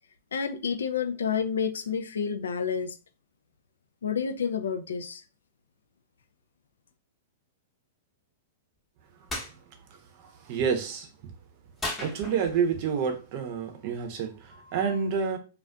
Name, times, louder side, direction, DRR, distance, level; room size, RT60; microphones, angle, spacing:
voice 1, 0.3-2.9 4.0-5.2, left 6 dB, 80° left, 0.3 m, -29 dB
sound 1, 9.3-9.5 11.8-12.7, left 2 dB, 15° left, 0.8 m, -35 dB
voice 2, 10.2-11.1 12.0-15.4, right 6 dB, 50° right, 0.7 m, -29 dB
2.4 x 2.3 x 2.2 m
hypercardioid pair, 110°, 0 cm